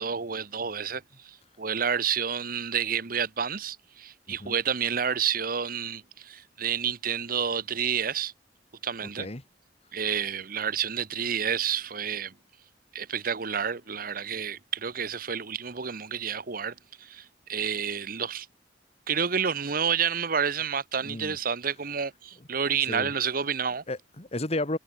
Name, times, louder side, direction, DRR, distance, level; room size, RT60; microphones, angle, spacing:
voice 1, 0.0-8.3 8.8-9.3 9.9-12.3 12.9-18.5 19.1-23.8, right 7 dB, 55° right, 1.1 m, -29 dB
voice 2, 9.0-9.4 21.0-21.4 22.9-23.1 23.9-24.8, left 2 dB, 35° left, 2.0 m, -33 dB
head